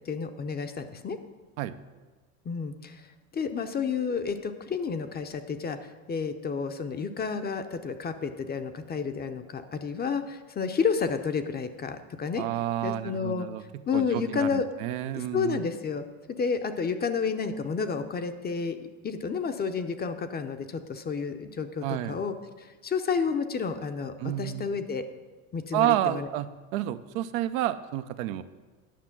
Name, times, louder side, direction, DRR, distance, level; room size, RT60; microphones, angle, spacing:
voice 1, 0.1-1.2 2.5-2.9 3.3-5.8 6.1-12.4 12.8-13.5 13.9-14.7 15.1-18.8 19.0-22.3 22.8-25.0 25.5-26.3, left 5 dB, 25° left, 8 dB, 0.7 m, -30 dB
voice 2, 12.4-13.6 13.9-15.6 21.8-22.2 24.2-24.7 25.7-28.4, right 13 dB, 70° right, 11 dB, 0.7 m, -30 dB
10.0 x 6.0 x 5.9 m, 1.3 s
hypercardioid pair, 95°, 42 cm